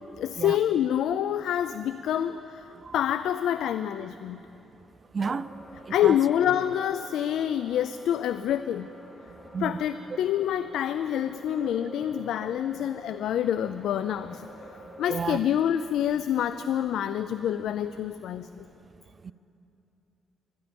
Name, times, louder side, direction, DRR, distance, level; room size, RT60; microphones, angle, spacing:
voice 1, 0.2-2.7 2.9-4.4 5.9-8.9 9.6-14.5 15.0-18.5, left 10 dB, 75° left, 0.4 m, -27 dB
voice 2, 5.1-5.5 6.0-6.1 9.5-9.7 15.1-15.4 19.2-19.3, right 5 dB, 35° right, 0.4 m, -30 dB
sound 1, 5.2-15.4, equal, 30° left, 3.4 m, -48 dB
24.5 x 10.5 x 5.2 m
cardioid pair, 90°, 0 cm